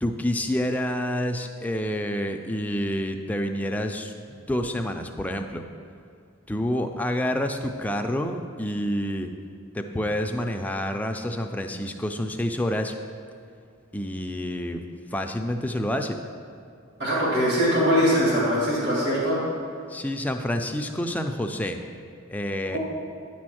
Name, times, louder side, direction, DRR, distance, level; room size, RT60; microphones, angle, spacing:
voice 1, 0.0-5.6 6.5-9.3 9.7-12.9 13.9-14.8 15.1-16.2 19.9-21.8 22.3-22.8, left 1 dB, 5° left, 4 dB, 0.4 m, -28 dB
voice 2, 17.0-19.4 22.7-22.8, equal, 55° right, -7 dB, 2.0 m, -22 dB
9.6 x 4.3 x 6.2 m, 2.5 s
head